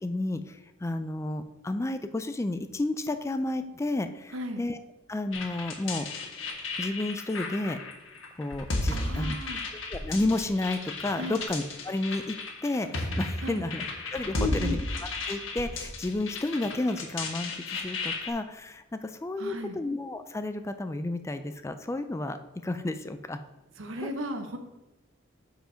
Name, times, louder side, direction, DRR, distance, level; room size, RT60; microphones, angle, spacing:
voice 1, 0.0-4.8 5.1-6.1 6.8-7.8 8.4-9.4 9.9-13.8 14.1-14.8 15.3-22.4 22.6-23.4 24.0-24.1, left 2 dB, 15° left, 9 dB, 0.3 m, -31 dB
voice 2, 4.3-4.6 8.9-9.6 11.2-11.4 13.4-13.7 14.4-14.8 19.4-19.8 23.8-24.6, equal, 75° right, 7 dB, 0.9 m, -35 dB
sound 1, 5.3-18.3, left 2 dB, 75° left, 1.4 m, -34 dB
7.8 x 5.0 x 5.0 m, 1.0 s
head